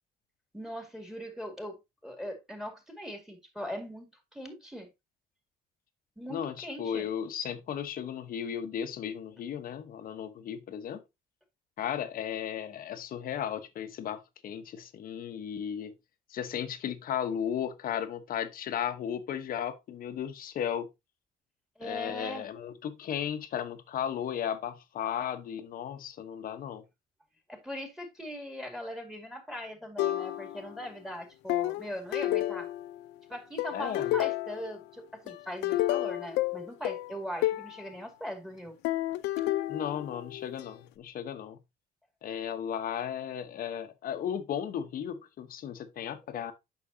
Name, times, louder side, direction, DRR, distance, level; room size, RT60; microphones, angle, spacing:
voice 1, 0.5-4.9 6.2-7.1 21.8-22.5 27.5-32.7 33.3-38.8, equal, 5° right, 2.2 m, -40 dB
voice 2, 6.3-11.0 11.8-15.9 16.3-20.9 21.8-26.8 33.7-34.1 39.7-41.6 42.2-46.5, left 9 dB, 60° left, 1.1 m, -35 dB
sound 1, 30.0-30.8 31.5-33.1 33.6-34.8 35.3-37.8 38.8-40.6, left 15 dB, 90° left, 0.5 m, -31 dB
8.8 x 6.2 x 2.8 m
cardioid pair, 110°, 17 cm